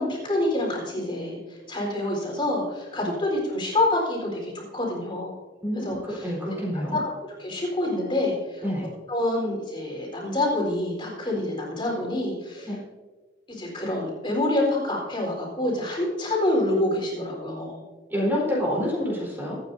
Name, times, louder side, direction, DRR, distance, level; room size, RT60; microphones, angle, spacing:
voice 1, 0.0-1.4 1.7-5.3 5.7-6.3 6.9-7.1 7.4-8.6 9.1-12.7 13.5-17.8, left 1 dB, 30° left, -3 dB, 4.1 m, -27 dB
voice 2, 5.6-7.0 8.6-8.8 12.7-12.8 18.1-19.6, equal, 10° right, -6 dB, 4.1 m, -27 dB
24.5 x 9.5 x 2.7 m, 1.4 s
head